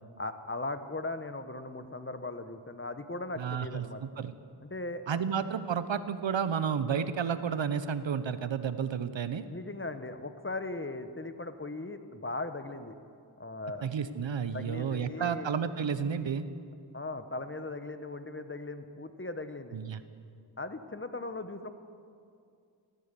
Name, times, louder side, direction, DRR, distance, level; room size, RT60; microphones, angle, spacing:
voice 1, 0.2-4.0 4.6-5.2 9.5-12.9 13.4-13.9 14.5-15.5 16.9-19.8 20.6-21.7, left 2 dB, 25° left, 9 dB, 1.0 m, -38 dB
voice 2, 3.4-4.3 5.1-9.4 13.8-16.5 19.7-20.0, right 7 dB, 65° right, 12 dB, 0.9 m, -31 dB
15.0 x 14.0 x 6.9 m, 2.4 s
cardioid pair, 50°, 48 cm